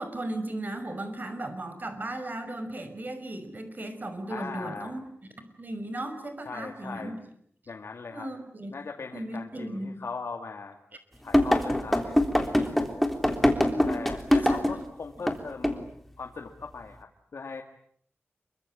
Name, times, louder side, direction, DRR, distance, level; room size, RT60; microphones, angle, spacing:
voice 1, 0.0-5.0 5.4-7.2 8.1-8.8 9.1-10.0 12.6-12.7 13.6-14.0 14.3-14.6, right 1 dB, 40° right, 9 dB, 5.7 m, -36 dB
voice 2, 4.3-5.0 6.4-7.1 7.7-8.3 8.7-10.8 11.2-13.0 13.9-17.6, left 4 dB, 75° left, 3 dB, 2.4 m, -40 dB
sound 1, 11.3-14.8 15.3-15.4 15.6-15.8, left 1 dB, 5° left, 3.6 m, -23 dB
28.0 x 24.0 x 8.9 m, 0.64 s
wide cardioid pair, 105°, 4 cm